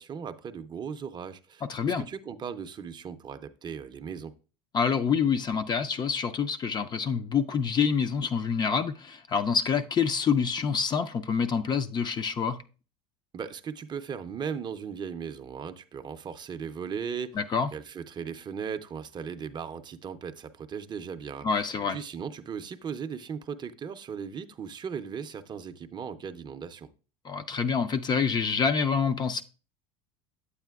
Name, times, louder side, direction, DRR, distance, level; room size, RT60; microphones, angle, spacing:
voice 1, 0.0-1.7 2.1-4.3 13.3-17.4 17.7-21.7 21.9-26.9, right 6 dB, 30° right, 0.5 m, -37 dB
voice 2, 1.7-2.1 4.7-12.6 17.4-17.7 21.4-22.0 27.2-29.4, left 6 dB, 30° left, 0.4 m, -27 dB
8.6 x 8.2 x 2.3 m
supercardioid pair, 110°, 16 cm